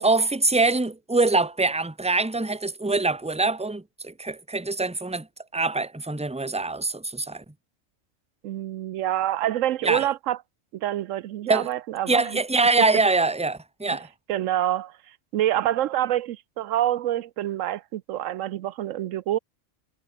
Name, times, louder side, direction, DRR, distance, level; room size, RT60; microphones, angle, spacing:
voice 1, 0.0-5.3 5.5-7.4 9.8-10.1 11.5-11.7 12.1-14.1, right 3 dB, 5° right, 1.1 m, -24 dB
voice 2, 8.4-10.4 10.7-12.4 14.3-14.9 15.3-19.4, right 12 dB, 85° right, 1.0 m, -26 dB
omnidirectional pair, 1.3 m